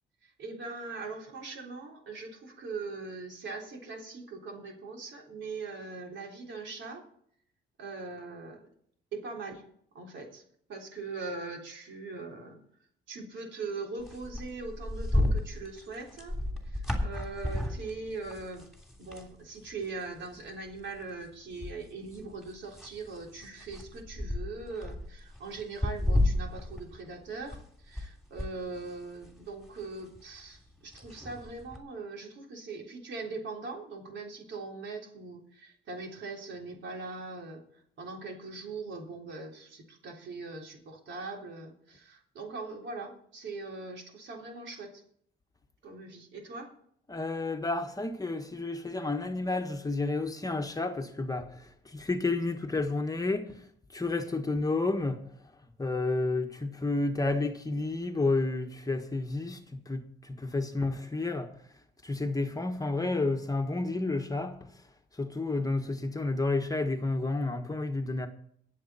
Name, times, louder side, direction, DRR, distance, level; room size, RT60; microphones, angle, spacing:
voice 1, 0.2-7.0 7.8-8.7 9.1-9.6 9.9-10.4 10.7-12.6 13.1-18.7 19.0-45.0 45.8-46.7, right 3 dB, 70° right, 3.6 m, -41 dB
sound 1, 14.0-19.3 19.7-19.8 20.2-21.0 21.5-28.1 28.4-31.8, left 1 dB, ahead, 3.2 m, -33 dB
voice 2, 47.1-53.7 53.9-55.3 55.8-61.5 62.0-64.8 65.1-68.3, left 3 dB, 20° left, 1.3 m, -31 dB
21.5 x 7.8 x 4.2 m
cardioid pair, 90°, 20 cm